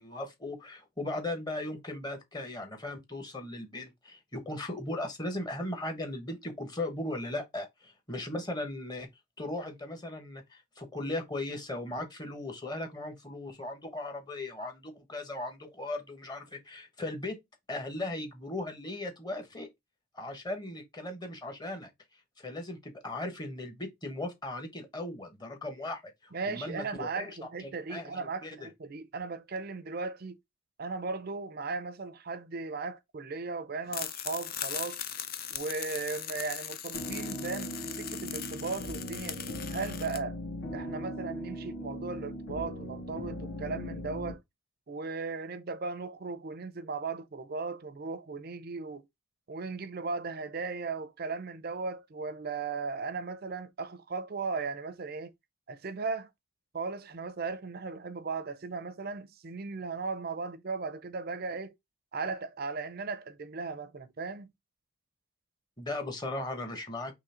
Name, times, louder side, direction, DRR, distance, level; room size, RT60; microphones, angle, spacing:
voice 1, 0.0-9.1 9.4-17.4 17.7-19.7 20.1-21.9 22.4-27.3 27.6-28.7 65.8-67.1, left 2 dB, 20° left, 0.9 m, -37 dB
voice 2, 26.3-30.4 30.8-35.0 35.5-40.4 40.7-44.4 44.9-49.1 49.5-55.3 55.7-56.3 56.7-61.7 62.1-64.5, right 4 dB, 45° right, 0.5 m, -37 dB
sound 1, 33.9-40.2, left 9 dB, 45° left, 0.5 m, -39 dB
sound 2, 36.9-44.3, equal, 80° left, 2.1 m, -39 dB
3.7 x 3.1 x 4.2 m
head